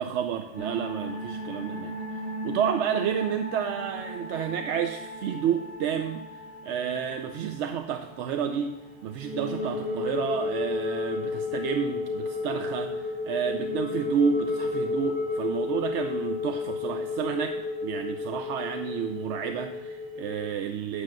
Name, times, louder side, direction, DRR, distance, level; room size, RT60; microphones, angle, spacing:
voice 1, 0.0-8.8 9.0-21.0, right 8 dB, 80° right, 7 dB, 0.9 m, -30 dB
sound 1, 0.5-20.5, left 3 dB, 5° right, 3.1 m, -33 dB
8.4 x 6.3 x 7.5 m, 1.1 s
omnidirectional pair, 1.2 m